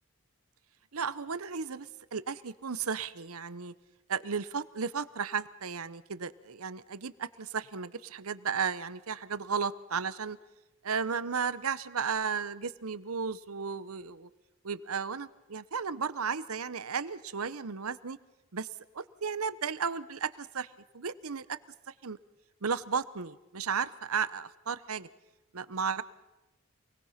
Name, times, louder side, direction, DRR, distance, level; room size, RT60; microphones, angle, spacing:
voice 1, 0.9-3.7 4.1-10.4 10.8-14.3 14.6-18.2 18.5-21.6 21.9-22.2 22.6-25.1 25.5-26.0, right 6 dB, 90° right, 16 dB, 0.9 m, -34 dB
28.0 x 20.0 x 5.9 m, 1.0 s
head